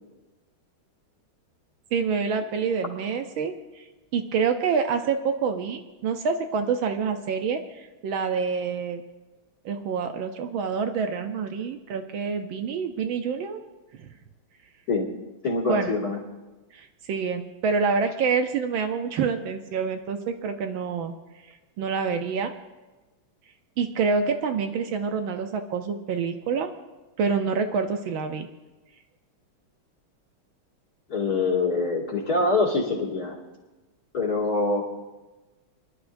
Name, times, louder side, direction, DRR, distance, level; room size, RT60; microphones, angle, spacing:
voice 1, 1.9-3.5 4.1-9.0 9.6-13.6 14.0-14.1 15.7-15.9 16.7-21.1 21.8-22.5 23.8-26.7 27.2-28.5, right 5 dB, 70° right, 6 dB, 1.5 m, -27 dB
voice 2, 15.4-16.2 31.1-33.4 34.1-34.8, left 3 dB, 45° left, -2 dB, 2.6 m, -24 dB
24.5 x 11.5 x 2.6 m, 1.2 s
omnidirectional pair, 2.4 m